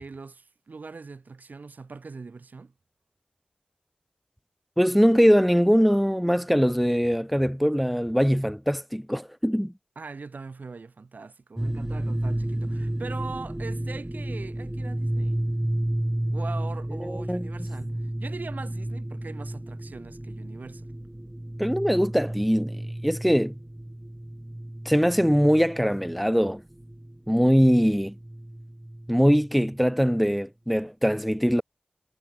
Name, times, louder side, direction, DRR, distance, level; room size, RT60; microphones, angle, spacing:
voice 1, 0.0-2.7 10.0-15.5 16.3-20.9, right 4 dB, 70° right, 7.6 m, -41 dB
voice 2, 4.8-9.7 17.0-17.5 21.6-23.6 24.9-26.6 27.3-28.1 29.1-31.6, equal, ahead, 2.2 m, -22 dB
sound 1, 11.6-29.8, right 1 dB, 15° right, 1.6 m, -32 dB
cardioid pair, 45°, 3 cm